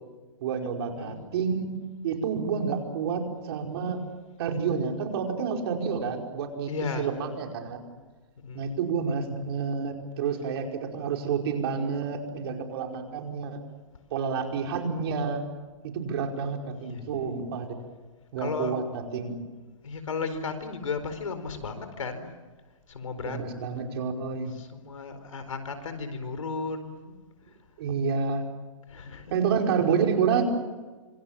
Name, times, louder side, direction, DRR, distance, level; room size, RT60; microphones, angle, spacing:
voice 1, 0.4-1.7 2.0-4.0 4.4-6.7 7.0-7.9 8.5-13.6 14.1-15.4 15.8-17.8 18.3-19.4 23.2-24.5 27.8-28.4 29.3-30.4, right 6 dB, 50° right, 2 dB, 5.1 m, -29 dB
voice 2, 6.7-7.1 8.4-8.6 16.8-17.3 18.4-18.8 19.8-22.3 22.9-23.4 24.5-27.1 28.9-29.3, left 4 dB, 80° left, 10 dB, 4.4 m, -34 dB
26.5 x 25.0 x 7.5 m, 1.3 s
hypercardioid pair, 140°, 17 cm